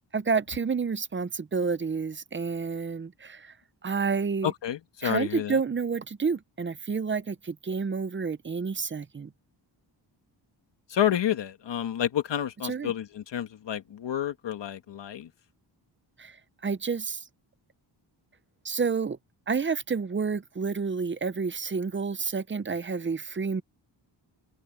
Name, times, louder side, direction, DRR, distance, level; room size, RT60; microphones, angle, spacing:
voice 1, 0.1-3.5 3.8-4.5 5.0-9.3 12.6-12.9 16.2-16.3 16.6-17.2 18.6-19.2 19.5-23.6, right 5 dB, 25° right, 0.6 m, -29 dB
voice 2, 4.4-5.6 10.9-15.3, left 10 dB, 70° left, 1.6 m, -29 dB
wide cardioid pair, 150°, 45 cm